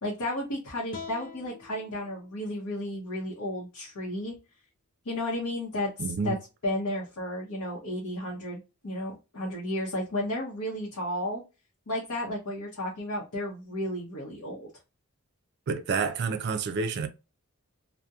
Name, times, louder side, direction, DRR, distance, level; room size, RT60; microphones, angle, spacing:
voice 1, 0.0-4.3 5.0-6.4 6.6-11.4 11.9-14.7, left 1 dB, 75° left, 0.7 m, -33 dB
sound 1, 0.9-4.1, left 5 dB, 40° left, 0.5 m, -47 dB
voice 2, 6.0-6.4 15.7-17.1, right 5 dB, 50° right, 0.4 m, -29 dB
2.7 x 2.1 x 2.3 m
head